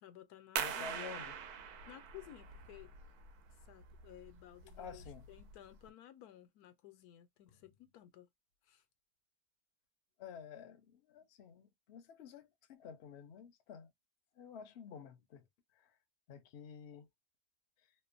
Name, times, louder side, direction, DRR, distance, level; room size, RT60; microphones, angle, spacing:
voice 1, 0.0-1.2 1.9-2.9 3.6-8.3 8.7-8.8, left 13 dB, 85° left, 1.2 m, -56 dB
voice 2, 0.6-1.4 4.8-5.3 7.5-7.6 10.2-13.9 14.4-15.5 15.7-16.0 16.3-17.1 17.8-17.9, left 7 dB, 60° left, 0.7 m, -51 dB
sound 1, 0.6-5.9, right 7 dB, 85° right, 1.1 m, -44 dB
2.9 x 2.2 x 2.4 m
omnidirectional pair, 1.6 m